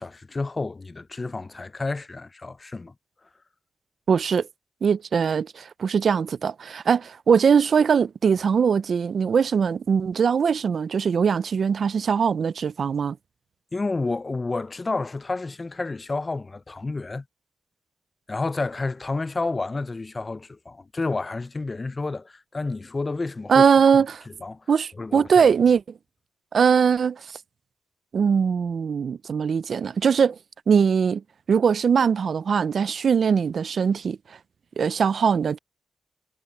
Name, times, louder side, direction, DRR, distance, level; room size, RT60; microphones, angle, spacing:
voice 1, 0.0-2.9 13.7-17.2 18.3-23.6 24.4-24.6 25.0-25.5, left 3 dB, 30° left, 0.3 m, -30 dB
voice 2, 4.1-4.5 4.8-13.2 23.5-24.2 24.7-25.8 26.5-27.4 28.1-30.4 30.7-31.2 31.5-34.4 34.8-35.6, right 6 dB, 65° right, 0.3 m, -21 dB
wide cardioid pair, 105°, 0 cm